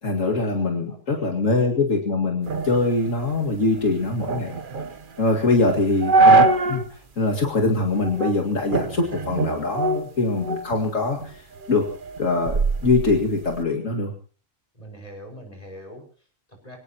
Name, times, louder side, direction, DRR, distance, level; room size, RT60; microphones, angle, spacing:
voice 1, 0.0-4.5 5.2-6.8 7.2-11.4 11.7-11.8 12.2-14.1, left 3 dB, 75° left, 1 dB, 2.5 m, -23 dB
voice 2, 0.9-1.3 14.7-16.8, equal, 30° left, 2 dB, 6.1 m, -43 dB
sound 1, 2.5-6.9 7.3-7.4 8.0-8.4 8.7-10.8 11.2-13.6, right 3 dB, 45° right, 1.1 m, -23 dB
26.0 x 18.0 x 2.9 m, 0.40 s
omnidirectional pair, 1.3 m